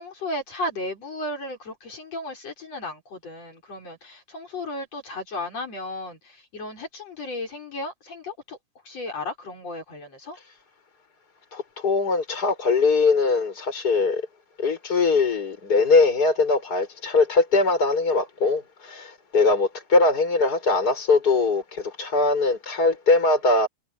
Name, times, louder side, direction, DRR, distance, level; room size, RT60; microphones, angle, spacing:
voice 1, 0.0-8.6 8.9-10.4, left 1 dB, 60° left, 7.1 m, -34 dB
voice 2, 11.5-14.2 14.6-23.7, left 3 dB, 30° left, 5.9 m, -21 dB
omnidirectional pair, 3.3 m